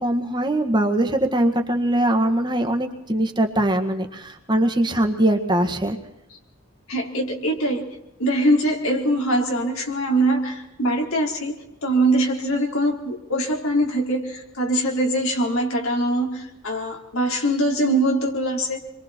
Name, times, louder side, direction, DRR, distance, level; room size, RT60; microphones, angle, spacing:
voice 1, 0.0-6.0, right 1 dB, 20° right, 4 dB, 1.8 m, -21 dB
voice 2, 6.9-11.5 11.8-18.8, right 1 dB, 75° left, 0 dB, 4.6 m, -23 dB
28.0 x 22.5 x 4.5 m, 0.88 s
head